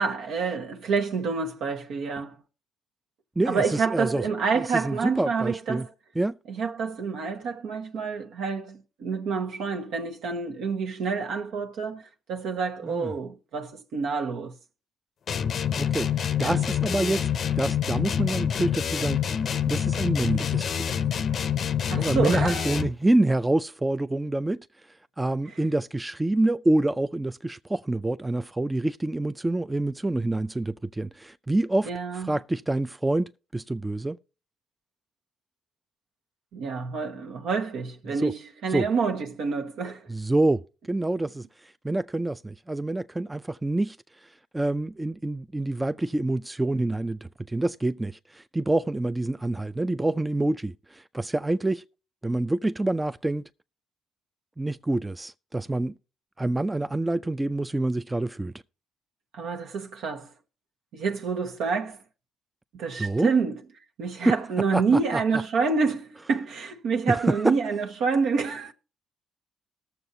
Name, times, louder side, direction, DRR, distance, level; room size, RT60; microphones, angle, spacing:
voice 1, 0.0-2.4 3.5-5.9 6.5-12.0 12.3-14.5 16.4-16.6 21.9-22.7 31.8-32.4 36.5-40.1 59.3-60.3 60.9-62.0 62.7-63.6 64.0-68.7, right 5 dB, 80° right, 1.1 m, -28 dB
voice 2, 3.4-4.2 4.6-5.8 6.2-6.3 12.8-13.1 15.8-16.1 16.4-17.2 17.6-19.2 19.7-21.1 21.9-24.7 25.2-34.2 38.1-38.3 38.7-38.9 40.1-41.4 41.8-44.0 44.5-51.8 52.2-53.5 54.6-55.9 56.4-58.5 62.9-63.3 64.2-64.4 64.7-64.8 65.1-65.2 67.1-67.5, right 2 dB, 15° right, 0.4 m, -27 dB
sound 1, 15.3-23.0, left 9 dB, 60° left, 0.5 m, -27 dB
19.5 x 7.0 x 2.7 m
cardioid pair, 90°, 0 cm